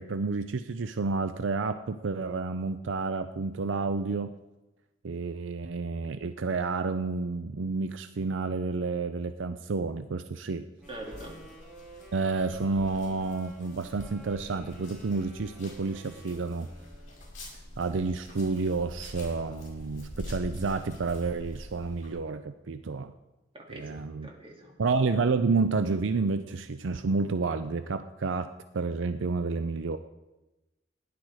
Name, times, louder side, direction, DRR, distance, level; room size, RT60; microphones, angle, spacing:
voice 1, 0.0-4.3 5.0-10.7 12.1-16.7 17.8-23.1 23.7-24.3 24.8-30.0, right 4 dB, 70° right, 10 dB, 0.5 m, -30 dB
sound 1, 10.8-22.1, left 1 dB, 45° left, 5.5 m, -45 dB
sound 2, 10.8-17.3, equal, ahead, 3.6 m, -52 dB
voice 2, 10.9-11.4 23.5-24.7, right 1 dB, 30° right, -1 dB, 2.8 m, -43 dB
16.0 x 10.5 x 4.8 m, 1.0 s
head